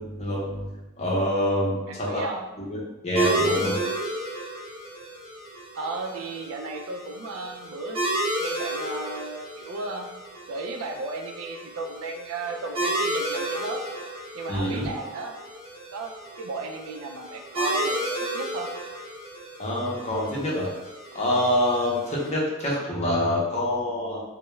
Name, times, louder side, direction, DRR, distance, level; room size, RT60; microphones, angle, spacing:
voice 1, 0.0-2.2 2.6-3.8 14.5-14.9 19.6-20.7 21.1-24.2, left 1 dB, 30° left, -5 dB, 0.6 m, -26 dB
voice 2, 1.9-2.5 5.7-8.0 8.4-10.1 10.5-13.8 14.3-15.3 15.9-18.7, right 3 dB, 85° right, 3 dB, 0.3 m, -34 dB
sound 1, 3.1-22.3, right 1 dB, 30° right, 0.6 m, -32 dB
2.2 x 2.0 x 2.9 m, 1.1 s
head